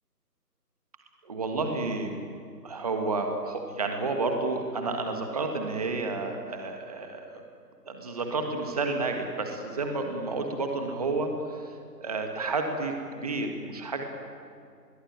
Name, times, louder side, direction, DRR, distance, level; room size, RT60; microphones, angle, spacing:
voice 1, 1.2-2.1 2.6-7.4 7.8-14.0, right 3 dB, 25° right, 4 dB, 1.6 m, -31 dB
29.5 x 21.5 x 8.9 m, 2.4 s
figure-of-eight pair, 170°, 49 cm